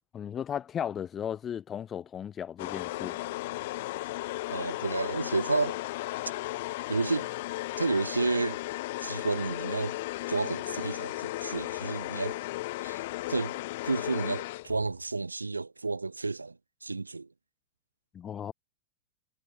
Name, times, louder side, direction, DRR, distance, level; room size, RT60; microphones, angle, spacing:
voice 1, 0.1-3.3 18.1-18.5, left 9 dB, 25° left, 6.3 m, -36 dB
sound 1, 2.6-15.0, left 18 dB, 50° left, 5.8 m, -35 dB
voice 2, 4.5-5.8 6.9-7.3 7.8-8.6 9.0-10.0 10.3-12.4 12.8-13.0 13.3-13.6 13.8-17.3, right 3 dB, 80° right, 1.8 m, -31 dB
figure-of-eight pair, 90°, 0 cm